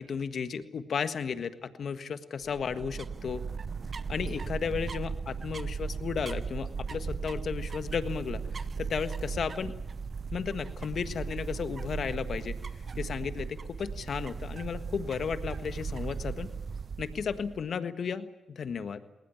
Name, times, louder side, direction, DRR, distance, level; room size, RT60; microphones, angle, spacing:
voice 1, 0.0-3.4 4.1-9.7 10.3-12.5 13.0-16.5 17.0-19.0, left 6 dB, 60° left, 10 dB, 1.5 m, -34 dB
sound 1, 2.4-17.7, right 5 dB, 50° right, 0.8 m, -37 dB
20.0 x 19.5 x 9.6 m, 1.1 s
supercardioid pair, 45°, 0 cm